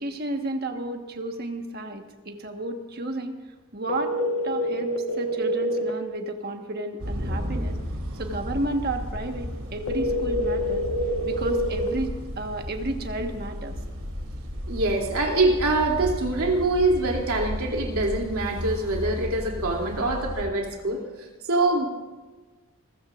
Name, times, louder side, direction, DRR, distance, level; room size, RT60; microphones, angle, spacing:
voice 1, 0.0-3.4 3.7-4.1 4.4-7.8 8.1-10.9 11.2-13.8, right 2 dB, 45° right, 4 dB, 1.4 m, -32 dB
sound 1, 3.9-5.9 9.9-11.9, equal, 80° left, 1.3 m, -26 dB
sound 2, 7.0-20.4, equal, 65° right, 2.8 m, -33 dB
voice 2, 14.7-21.0 21.4-21.9, right 2 dB, 80° right, 0 dB, 2.8 m, -24 dB
27.5 x 14.5 x 2.5 m, 1.3 s
head